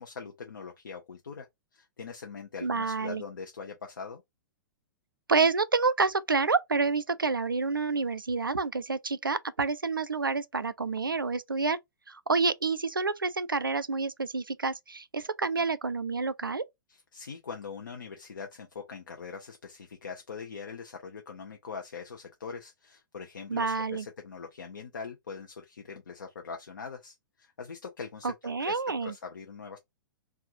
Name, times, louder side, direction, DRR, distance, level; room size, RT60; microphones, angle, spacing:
voice 1, 0.0-1.5 1.7-4.2 16.9-28.3 28.6-29.8, left 5 dB, 70° left, 0.7 m, -42 dB
voice 2, 2.6-3.2 5.3-11.8 12.1-16.6 23.5-24.1 28.2-29.1, right 4 dB, 85° right, 0.4 m, -28 dB
3.4 x 2.4 x 2.7 m
figure-of-eight pair, 110°, 11 cm